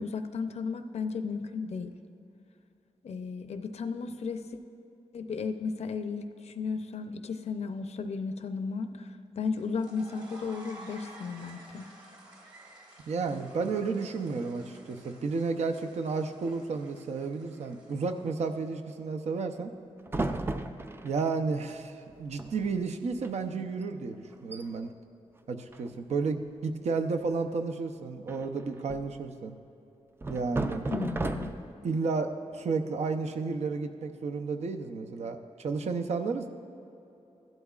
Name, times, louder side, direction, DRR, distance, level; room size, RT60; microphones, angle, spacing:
voice 1, 0.0-1.9 3.0-4.4 5.1-9.1 9.4-11.8 30.9-31.5, left 5 dB, 65° left, 8 dB, 0.5 m, -34 dB
sound 1, 9.6-18.9, right 1 dB, 40° right, 1.7 m, -52 dB
voice 2, 13.1-19.7 21.0-24.9 25.5-29.6 30.3-30.8 31.8-36.5, right 4 dB, 70° right, 6 dB, 0.6 m, -32 dB
sound 2, 20.1-21.3 22.1-22.2 22.4-22.8 23.1-23.3 23.8-23.9 24.3-24.6 25.7-26.3 28.3-29.2 30.2-31.8, right 2 dB, 20° right, 0.4 m, -34 dB
15.5 x 12.0 x 2.4 m, 2.9 s
wide cardioid pair, 135°, 12 cm